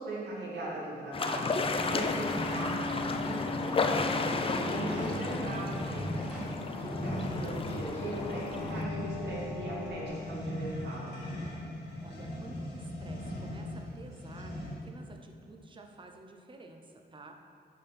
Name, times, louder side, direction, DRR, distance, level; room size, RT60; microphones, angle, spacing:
voice 1, 0.0-6.1 6.6-11.1, right 1 dB, 85° right, -6 dB, 2.2 m, -39 dB
sound 1, 1.1-8.8, left 4 dB, 30° left, 0.4 m, -33 dB
sound 2, 1.2-14.9, left 1 dB, 85° left, 1.8 m, -39 dB
sound 3, 1.7-10.1, left 1 dB, 5° right, 1.8 m, -42 dB
voice 2, 6.6-7.0 12.0-14.6 14.8-17.3, right 2 dB, 30° right, 3 dB, 0.7 m, -51 dB
8.3 x 4.3 x 5.8 m, 2.3 s
wide cardioid pair, 145°, 17 cm